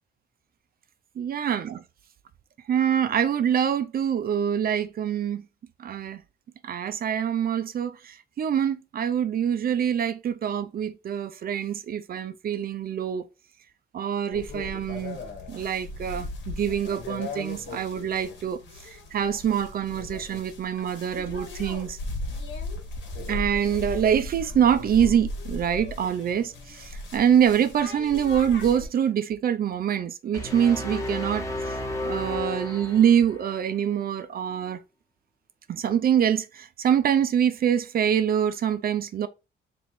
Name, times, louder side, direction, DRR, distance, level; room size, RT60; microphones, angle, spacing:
voice 1, 1.2-1.8 2.7-5.4 5.8-6.2 6.6-13.3 13.9-15.2 15.5-18.6 18.9-22.0 23.3-31.8 32.0-34.8 35.7-39.3, right 9 dB, 50° right, 0.5 m, -25 dB
sound 1, 14.3-28.9, left 2 dB, 70° left, 1.4 m, -37 dB
sound 2, 30.3-33.5, left 1 dB, 15° left, 1.1 m, -32 dB
3.1 x 3.0 x 4.4 m
cardioid pair, 90°, 20 cm